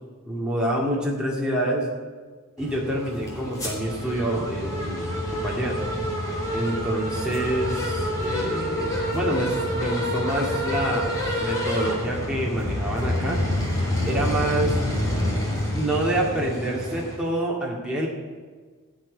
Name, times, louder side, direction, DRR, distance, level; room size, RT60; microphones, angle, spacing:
voice 1, 0.2-1.9 2.6-5.8 6.5-13.4 14.0-14.8 15.4-18.1, right 1 dB, 5° right, -4 dB, 2.0 m, -27 dB
sound 1, 2.6-17.2, left 1 dB, 15° left, 3.0 m, -27 dB
15.5 x 5.4 x 9.6 m, 1.5 s
head